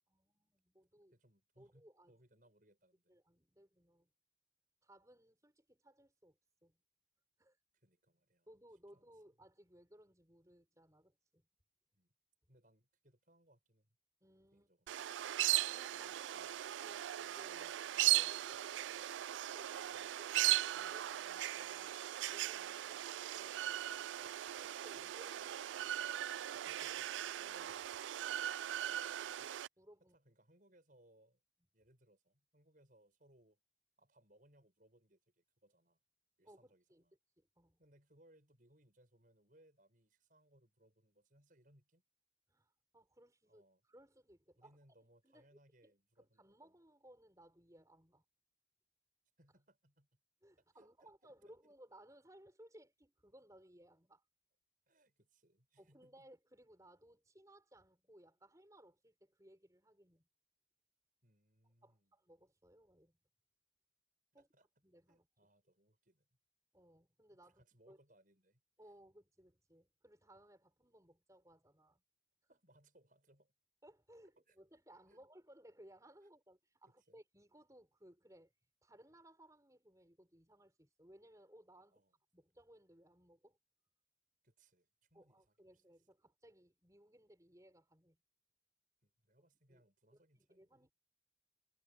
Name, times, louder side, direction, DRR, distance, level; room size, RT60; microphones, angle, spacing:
voice 1, 0.1-1.1 1.6-2.1 3.1-4.1 4.8-6.8 7.4-7.6 8.5-11.5 14.2-14.7 15.7-19.1 19.3-22.0 22.3-25.8 27.4-27.9 29.8-30.2 36.4-37.1 37.4-37.8 42.5-43.6 43.9-44.8 45.2-48.2 50.4-54.2 55.8-60.3 61.8-63.2 64.3-64.5 64.8-65.2 66.7-68.0 68.8-72.0 73.8-78.5 78.8-82.0 82.3-83.6 85.1-88.2 89.7-89.8 90.1-90.9, right 1 dB, 15° right, 6.5 m, -63 dB
voice 2, 1.1-3.1 7.7-8.5 8.9-9.1 11.9-12.1 12.5-14.0 14.5-15.0 19.9-20.2 22.9-23.0 26.5-27.1 29.4-29.5 30.1-31.4 31.7-33.6 34.0-36.0 36.4-37.2 37.8-42.0 43.5-43.8 44.6-46.6 49.4-50.2 50.7-51.7 54.9-56.3 61.2-62.1 64.3-64.7 65.1-66.3 67.6-68.6 72.5-73.5 74.5-74.6 75.1-75.2 77.1-77.2 81.9-82.1 84.4-85.8 89.0-90.9, right 1 dB, 45° right, 6.9 m, -70 dB
sound 1, 14.9-29.7, right 14 dB, 80° right, 0.3 m, -38 dB
head